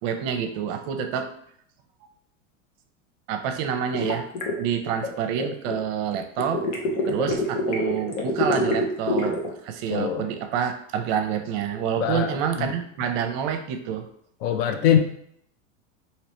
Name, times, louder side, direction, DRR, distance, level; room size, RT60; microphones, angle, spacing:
voice 1, 0.0-1.3 3.3-4.2 4.6-6.7 7.1-14.1, right 8 dB, 50° right, 6 dB, 0.6 m, -28 dB
sound 1, 3.9-5.8 6.4-9.5, left 1 dB, 80° left, 1.0 m, -26 dB
voice 2, 9.9-10.3 12.0-12.7 14.4-15.0, left 9 dB, 55° left, 7 dB, 0.6 m, -23 dB
3.1 x 2.9 x 2.9 m, 0.68 s
hypercardioid pair, 110°, 38 cm